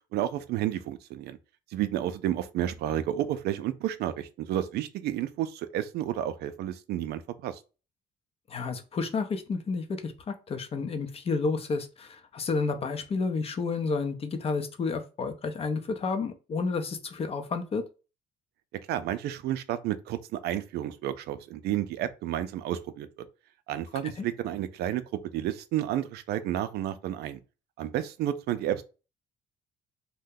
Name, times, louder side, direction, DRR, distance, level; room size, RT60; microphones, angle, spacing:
voice 1, 0.1-1.4 1.7-7.6 18.9-23.2 23.7-25.0 25.3-27.4 27.8-28.8, right 12 dB, 70° right, 0.4 m, -31 dB
voice 2, 8.5-17.8 24.2-24.3, left 4 dB, 35° left, 0.5 m, -31 dB
2.7 x 2.1 x 3.6 m
cardioid pair, 110°, 17 cm